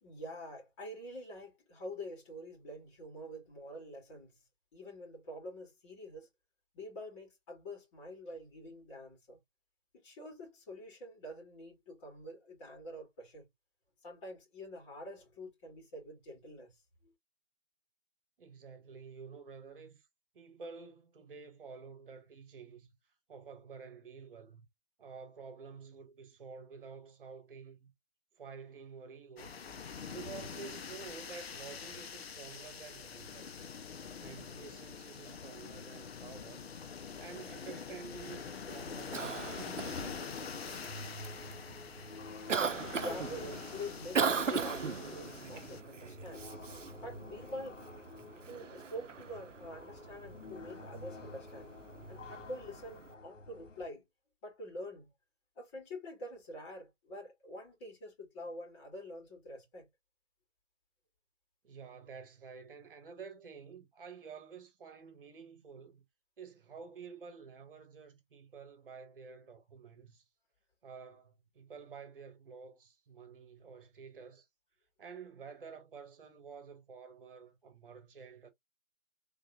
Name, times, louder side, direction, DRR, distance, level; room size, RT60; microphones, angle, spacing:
voice 1, 0.0-4.4 4.7-6.3 6.7-9.4 9.9-13.5 14.0-17.1 42.9-46.5 47.0-47.8 48.5-51.7 52.1-54.1 54.4-55.1 55.6-59.9, left 1 dB, 25° left, 2.5 m, -46 dB
voice 2, 18.4-20.1 20.3-22.9 23.3-24.7 25.0-27.9 28.4-29.6 30.1-33.7 34.2-36.7 37.2-39.8 61.6-66.0 66.4-70.3 70.8-74.5 75.0-78.5, right 5 dB, 45° right, 1.6 m, -50 dB
sound 1, 29.4-45.8, left 6 dB, 55° left, 0.7 m, -45 dB
Cough, 38.7-53.1, right 6 dB, 85° right, 0.7 m, -40 dB
sound 2, 39.1-53.9, left 2 dB, 90° left, 0.8 m, -51 dB
3.8 x 3.6 x 2.4 m
figure-of-eight pair, 140°, 36 cm